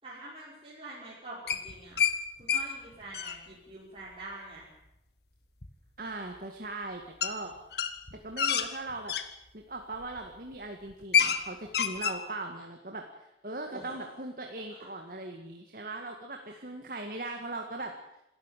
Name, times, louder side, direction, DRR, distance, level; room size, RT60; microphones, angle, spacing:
voice 1, 0.0-2.0 2.4-4.7 13.7-13.9 16.5-16.6, right 1 dB, 30° right, -7 dB, 5.6 m, -45 dB
sound 1, 1.5-2.2 2.5-2.6 2.9-3.4 5.6-5.7 7.2-7.3 7.7-9.3 9.9-10.2 10.5-10.6 10.9-11.4 11.7-12.2, left 8 dB, 60° left, 1.7 m, -27 dB
voice 2, 6.0-7.5 8.1-9.1 9.5-17.9, right 2 dB, 50° right, 3 dB, 2.0 m, -39 dB
27.0 x 13.5 x 9.2 m, 0.86 s
head